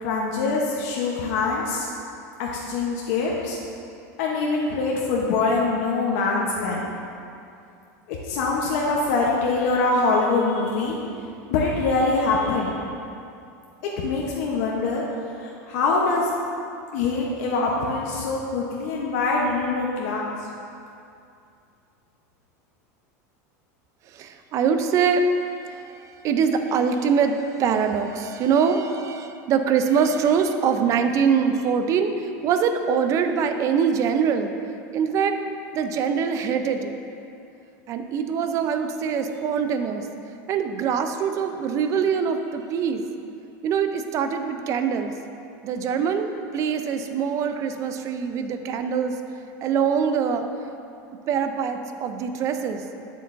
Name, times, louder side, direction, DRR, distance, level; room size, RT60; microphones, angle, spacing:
voice 1, 0.0-1.9 2.4-3.6 4.2-6.8 8.1-11.0 11.5-12.8 14.0-15.0 15.4-16.3 16.9-20.3, left 3 dB, 65° left, -2 dB, 0.8 m, -24 dB
voice 2, 24.2-25.3 25.7-25.8 26.2-34.5 34.9-35.4 35.7-37.0 37.9-40.0 40.5-43.0 43.6-45.1 45.6-46.3 46.5-49.1 49.6-50.5 51.3-52.8, right 6 dB, 35° right, 7 dB, 0.4 m, -23 dB
7.7 x 7.6 x 2.6 m, 2.6 s
supercardioid pair, 145°, 9 cm